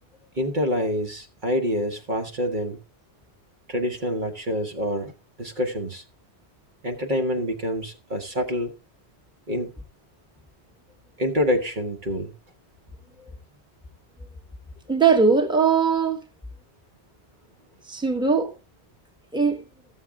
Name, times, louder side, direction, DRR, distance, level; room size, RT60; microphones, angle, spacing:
voice 1, 0.3-2.8 3.7-5.1 5.4-6.0 6.8-8.7 9.5-9.7 11.2-12.3, equal, 45° right, 1.3 m, -26 dB
voice 2, 14.9-16.2 17.9-18.5 19.3-19.6, right 5 dB, 5° right, 1.2 m, -20 dB
14.0 x 7.3 x 3.5 m
omnidirectional pair, 1.1 m